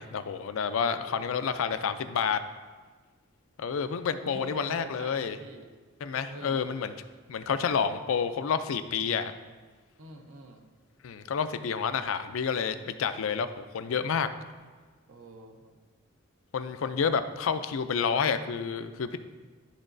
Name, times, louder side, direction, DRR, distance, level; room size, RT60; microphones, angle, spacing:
voice 1, 0.0-2.4 3.6-5.4 6.0-6.9 7.3-9.3 11.0-14.3 16.5-19.2, left 6 dB, 80° left, 10 dB, 0.4 m, -29 dB
voice 2, 0.8-1.2 4.2-5.7 6.3-6.6 10.0-10.7 15.1-15.8, right 2 dB, 80° right, 4 dB, 0.8 m, -45 dB
12.0 x 4.0 x 2.6 m, 1.4 s
head